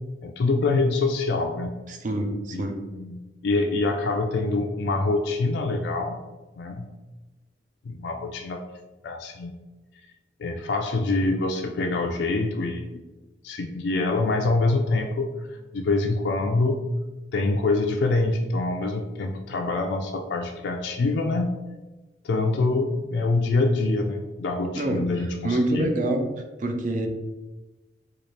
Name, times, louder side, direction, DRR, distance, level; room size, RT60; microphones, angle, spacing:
voice 1, 0.2-1.8 2.5-6.2 6.6-6.9 7.9-8.6 9.0-9.5 10.4-13.0 13.4-16.8 17.3-21.6 22.2-25.9, left 3 dB, 70° left, 3 dB, 0.4 m, -25 dB
voice 2, 1.9-2.8 24.7-26.2 26.6-27.1, right 1 dB, 45° right, 4 dB, 0.5 m, -26 dB
4.1 x 2.3 x 3.2 m, 1.1 s
head